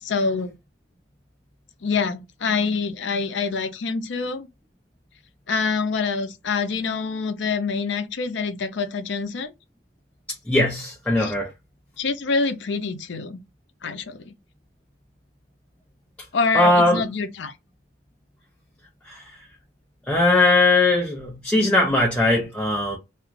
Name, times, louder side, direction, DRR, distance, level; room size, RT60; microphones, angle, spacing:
voice 1, 0.0-0.5 1.8-4.5 5.5-9.5 11.2-11.3 12.0-13.4 13.8-14.3 16.3-17.5, left 4 dB, 65° left, 0.5 m, -26 dB
voice 2, 10.5-11.5 16.5-17.0 19.1-19.2 20.1-23.0, left 2 dB, 5° left, 0.5 m, -19 dB
2.4 x 2.3 x 3.0 m
head